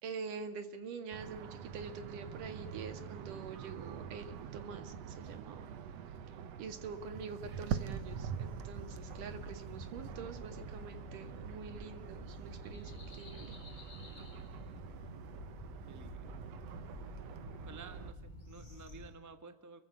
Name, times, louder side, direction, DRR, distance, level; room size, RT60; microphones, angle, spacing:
voice 1, 0.0-5.7 6.6-13.6, right 5 dB, 80° right, 9 dB, 3.5 m, -46 dB
sound 1, 1.1-18.1, right 8 dB, 60° right, 2.1 m, -45 dB
sound 2, 7.9-19.1, left 1 dB, 15° left, 4.9 m, -50 dB
voice 2, 15.9-16.4 17.6-19.8, right 4 dB, 10° right, 9 dB, 0.8 m, -53 dB
29.5 x 23.5 x 7.5 m, 0.80 s
omnidirectional pair, 3.6 m